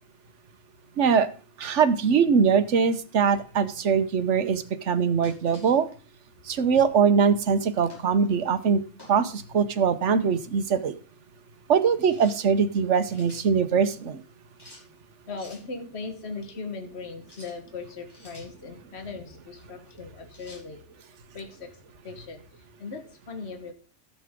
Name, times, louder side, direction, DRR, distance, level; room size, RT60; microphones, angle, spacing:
voice 1, 1.0-1.3 1.6-5.9 6.5-8.8 9.1-10.9 11.7-14.2, right 6 dB, 80° right, 12 dB, 1.2 m, -22 dB
sound 1, 5.2-5.8 6.7-7.0 7.9-8.1 9.0-9.3 12.1-12.4 12.9-13.4 14.6-14.9 15.4-15.7 17.2-17.6 18.1-18.5 20.3-20.7, left 1 dB, 20° left, 5.3 m, -49 dB
voice 2, 15.3-23.7, left 4 dB, 60° left, 5 dB, 1.8 m, -39 dB
13.0 x 7.7 x 3.7 m, 0.38 s
omnidirectional pair, 1.2 m